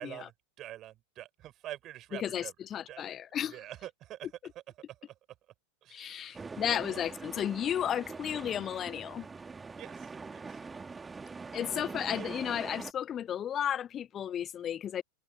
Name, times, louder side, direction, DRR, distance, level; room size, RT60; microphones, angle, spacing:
voice 1, 0.0-2.5 2.9-3.2 3.5-4.3 4.9-5.1 5.8-7.1 9.8-10.6 11.7-12.4, right 13 dB, 35° right, 7.8 m, -46 dB
voice 2, 2.1-3.5 5.9-9.3 11.5-15.0, left 10 dB, 25° left, 0.4 m, -33 dB
sound 1, 6.3-12.9, right 4 dB, 15° right, 2.4 m, -43 dB
figure-of-eight pair, 90°, 0 cm